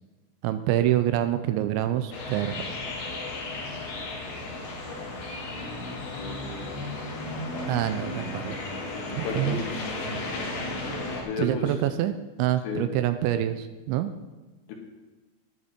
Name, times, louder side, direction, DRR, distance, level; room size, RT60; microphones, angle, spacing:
voice 1, 0.4-2.5 7.7-8.6 9.1-9.6 11.4-12.1 12.4-14.1, right 12 dB, 80° right, 10 dB, 2.7 m, -26 dB
sound 1, 2.1-11.2, left 2 dB, 55° left, 3.8 m, -34 dB
voice 2, 6.2-6.8 9.2-9.7 11.2-11.7 12.6-12.8 14.7-14.8, left 5 dB, 85° left, 1 dB, 4.2 m, -33 dB
12.5 x 10.5 x 4.4 m, 1.2 s
omnidirectional pair, 5.6 m